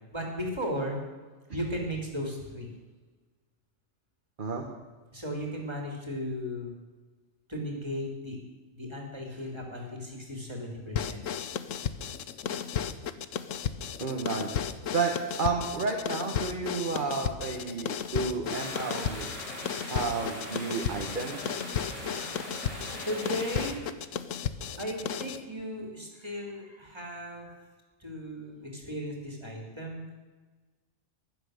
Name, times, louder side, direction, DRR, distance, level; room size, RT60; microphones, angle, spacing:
voice 1, 0.1-1.0 1.5-2.7 5.1-6.8 7.5-8.4 8.7-11.2 23.0-23.8 24.8-27.5 28.0-30.1, equal, 20° right, 1 dB, 3.2 m, -36 dB
sound 1, 10.9-25.4, left 8 dB, 80° left, 1.1 m, -34 dB
voice 2, 14.0-14.5 14.9-15.1 15.4-19.3 19.9-21.6, right 4 dB, 40° right, 2 dB, 1.5 m, -31 dB
sound 2, 18.5-23.7, equal, 25° left, 6.1 m, -41 dB
15.5 x 11.5 x 6.6 m, 1.3 s
omnidirectional pair, 1.3 m